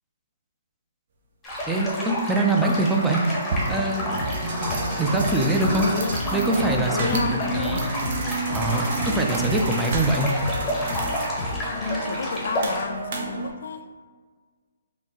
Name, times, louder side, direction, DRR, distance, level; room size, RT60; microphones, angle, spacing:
sound 1, 1.4-12.8, equal, 10° left, 1.0 m, -31 dB
voice 1, 1.7-3.2 3.7-4.2 5.0-5.9 6.3-7.1 7.5-7.9 8.5-10.3, right 2 dB, 5° right, 0 dB, 0.4 m, -23 dB
sound 2, 2.6-13.5, right 3 dB, 50° right, 0.8 m, -31 dB
sound 3, 4.2-11.9, left 3 dB, 35° left, 0.7 m, -34 dB
voice 2, 5.8-6.2 6.9-7.9 11.7-14.1, left 5 dB, 65° left, 8 dB, 0.3 m, -31 dB
4.0 x 2.9 x 3.7 m, 1.5 s
hypercardioid pair, 150°, 0 cm